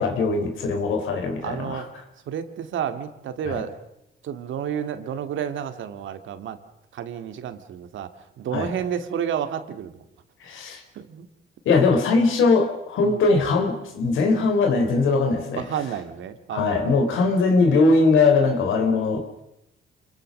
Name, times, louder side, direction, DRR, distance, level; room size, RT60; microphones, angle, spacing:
voice 1, 0.0-1.8 3.5-3.6 8.5-8.7 10.4-10.8 11.7-15.7 16.5-19.4, left 3 dB, 80° left, 6 dB, 3.9 m, -21 dB
voice 2, 1.4-1.9 2.3-3.7 4.2-6.6 6.9-8.1 8.4-10.0 11.0-11.3 13.0-13.2 15.5-17.1, right 8 dB, 75° right, 9 dB, 2.1 m, -30 dB
26.5 x 21.5 x 6.6 m, 0.86 s
cardioid pair, 90°, 20 cm